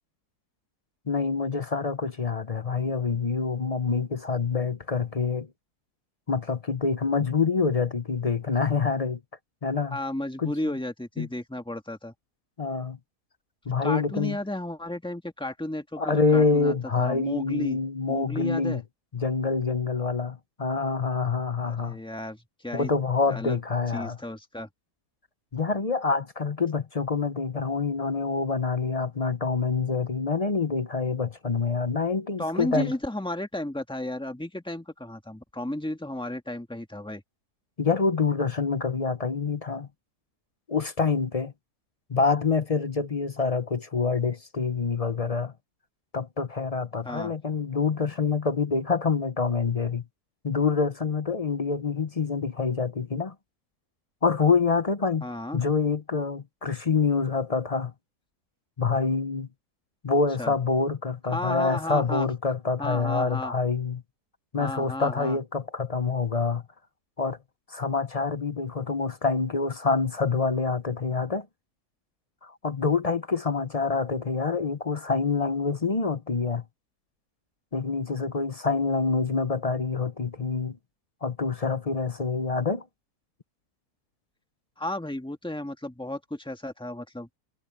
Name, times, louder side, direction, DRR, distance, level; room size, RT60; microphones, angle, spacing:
voice 1, 1.1-5.5 6.3-9.2 9.6-10.0 10.4-10.5 11.2-11.3 12.6-13.0 13.7-14.4 16.0-18.8 19.1-22.0 22.7-24.2 25.5-32.9 37.8-39.9 40.7-41.5 42.1-45.5 46.1-50.0 50.4-53.3 54.2-55.3 55.5-57.9 58.8-59.5 60.0-64.0 64.5-66.6 67.2-67.4 67.7-71.5 72.4-76.6 77.7-80.8 81.2-82.9, left 4 dB, 35° left, 0.6 m, -26 dB
voice 2, 9.9-12.1 13.8-17.8 18.1-18.8 21.6-22.9 23.3-23.6 23.9-24.7 32.4-37.2 47.0-47.3 55.2-55.6 60.4-60.5 61.2-62.3 62.8-63.5 64.6-65.4 84.8-87.3, left 1 dB, 5° left, 1.6 m, -33 dB
omnidirectional pair, 1.7 m